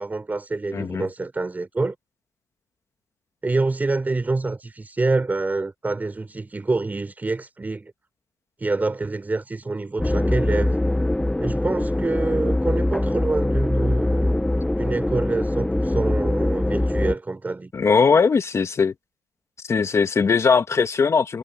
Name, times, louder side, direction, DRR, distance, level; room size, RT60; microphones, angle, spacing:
voice 1, 0.0-1.9 3.4-7.9 8.6-10.8 11.4-17.7, right 3 dB, 20° right, 5.1 m, -26 dB
voice 2, 0.7-1.1 17.7-18.9 19.7-21.4, left 5 dB, 40° left, 2.2 m, -19 dB
sound 1, 10.0-17.2, left 1 dB, 10° left, 0.8 m, -22 dB
cardioid pair, 80°, 7 cm